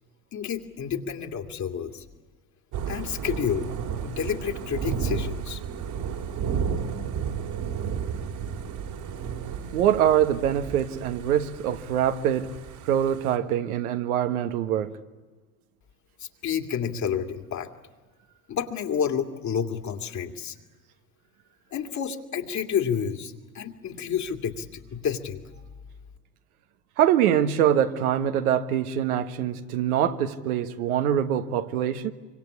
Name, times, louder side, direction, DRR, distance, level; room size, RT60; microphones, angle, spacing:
voice 1, 0.3-2.0 2.9-3.7 4.0-5.6 16.2-17.7 18.5-20.6 21.7-25.4, left 8 dB, 40° left, 2.4 m, -30 dB
Thunder / Rain, 2.7-13.4, right 7 dB, 55° right, 2.9 m, -33 dB
voice 2, 9.7-12.5 12.8-14.9 27.0-32.1, right 10 dB, 75° right, 1.5 m, -24 dB
25.5 x 25.0 x 8.5 m
hypercardioid pair, 70°, 44 cm